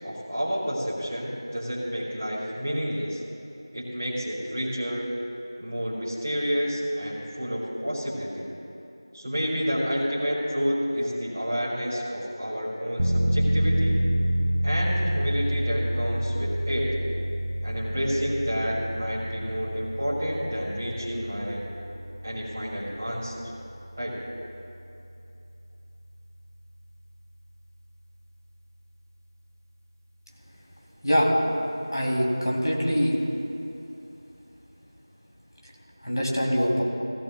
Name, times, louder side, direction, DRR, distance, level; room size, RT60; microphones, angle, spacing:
voice 1, 0.0-3.2 3.7-5.1 5.6-8.5 9.1-14.0 14.6-16.9 17.6-21.6 22.2-23.5 24.0-24.2, equal, 5° right, -23 dB, 0.8 m, -29 dB
sound 1, 13.0-25.5 25.9-26.0, equal, 35° right, 0.8 m, -28 dB
voice 2, 31.9-33.2 36.0-36.8, equal, 60° left, -3 dB, 3.2 m, -23 dB
16.5 x 16.5 x 2.3 m, 2.9 s
figure-of-eight pair, 175°, 2 cm